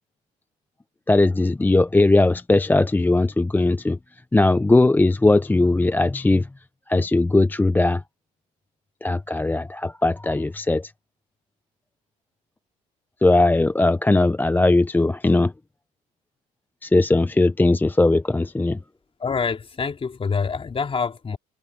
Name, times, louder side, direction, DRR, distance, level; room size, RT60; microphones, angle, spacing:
voice 1, 1.1-4.0 4.3-6.5 6.9-8.0 9.0-10.9 13.2-15.5 16.8-18.8, left 2 dB, 10° left, 0.6 m, -19 dB
voice 2, 19.2-21.4, left 5 dB, 35° left, 3.9 m, -26 dB
supercardioid pair, 70°, 16 cm